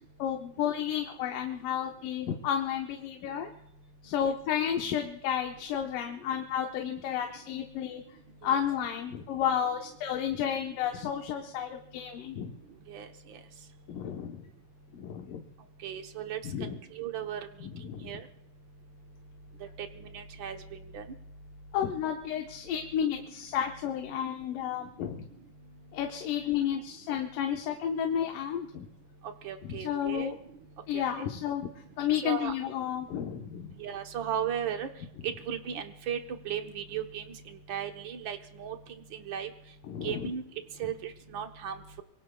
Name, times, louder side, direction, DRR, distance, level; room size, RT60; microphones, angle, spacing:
voice 1, 0.2-3.5 4.0-8.0 8.4-12.5 13.9-14.5 14.9-15.4 16.4-16.8 17.6-18.1 21.7-25.3 25.9-28.9 29.6-30.4 30.9-31.7 32.0-33.7 39.9-40.3, left 9 dB, 80° left, 3 dB, 2.7 m, -32 dB
voice 2, 12.9-13.4 15.8-16.4 16.9-17.5 18.0-18.2 19.6-20.6 20.9-21.0 29.2-30.3 30.9-31.3 32.2-32.5 33.8-34.9 35.2-36.2 36.4-39.5 40.0-40.4 40.8-42.0, right 9 dB, 75° right, 5 dB, 1.1 m, -36 dB
26.5 x 23.0 x 2.3 m, 0.79 s
omnidirectional pair, 3.8 m